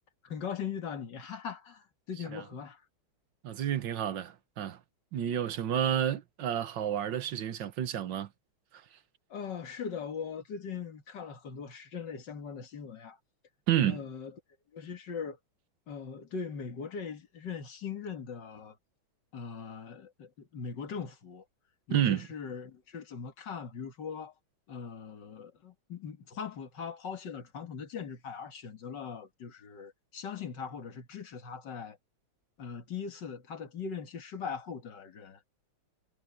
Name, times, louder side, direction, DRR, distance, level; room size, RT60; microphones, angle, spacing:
voice 1, 0.2-2.9 9.3-13.2 13.9-14.3 14.7-15.4 15.9-18.8 19.3-21.4 21.9-24.4 24.7-32.0 32.6-35.4, left 6 dB, 60° left, 2.5 m, -40 dB
voice 2, 3.4-4.8 5.1-8.3 13.7-14.0 21.9-22.2, right 10 dB, 65° right, 1.7 m, -30 dB
omnidirectional pair, 2.2 m